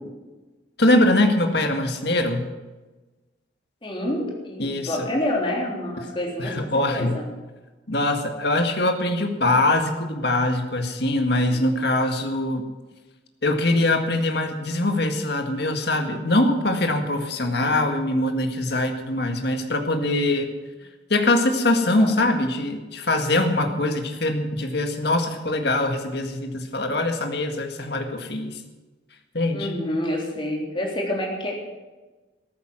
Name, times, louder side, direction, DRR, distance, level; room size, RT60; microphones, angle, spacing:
voice 1, 0.8-2.5 4.6-5.1 6.4-7.2 7.9-12.6 13.4-20.5 21.1-28.6 29.3-29.7, left 2 dB, 60° left, 4 dB, 1.9 m, -23 dB
voice 2, 3.8-7.3 11.5-11.7 21.9-22.1 29.5-31.5, left 1 dB, 25° left, -2 dB, 3.6 m, -28 dB
14.0 x 13.5 x 6.2 m, 1.2 s
head